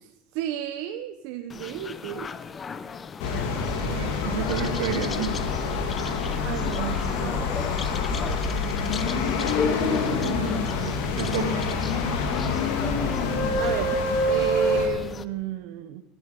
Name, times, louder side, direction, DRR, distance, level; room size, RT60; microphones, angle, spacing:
voice 1, 0.0-2.3 6.4-7.5 9.8-11.1 13.6-14.0 14.3-16.0, right 11 dB, 65° right, 7 dB, 0.9 m, -33 dB
sound 1, 1.5-15.2, left 5 dB, 25° left, 0.7 m, -36 dB
sound 2, 3.2-14.9, left 3 dB, 70° left, 2.7 m, -26 dB
voice 2, 3.8-5.5 10.2-10.5 11.1-11.7, right 7 dB, 85° right, 4 dB, 2.5 m, -30 dB
14.5 x 11.0 x 5.3 m, 0.97 s
supercardioid pair, 120°, 0 cm